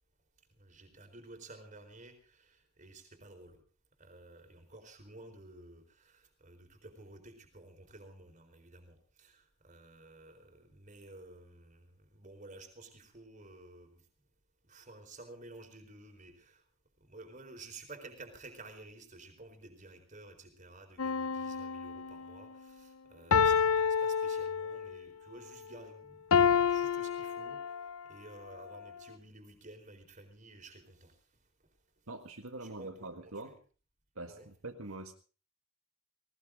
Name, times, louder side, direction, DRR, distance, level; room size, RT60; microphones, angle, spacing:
voice 1, 0.5-3.6 4.0-14.0 14.7-16.6 17.0-31.2 32.6-33.6 34.3-34.5, right 2 dB, 35° right, 5 dB, 4.4 m, -53 dB
sound 1, 21.0-22.3 23.3-25.0 26.3-28.0 28.7-28.8, left 6 dB, 75° left, 0.7 m, -29 dB
voice 2, 32.1-33.6 34.2-35.1, right 2 dB, 75° right, 4 dB, 1.8 m, -44 dB
19.0 x 19.0 x 3.8 m, 0.37 s
head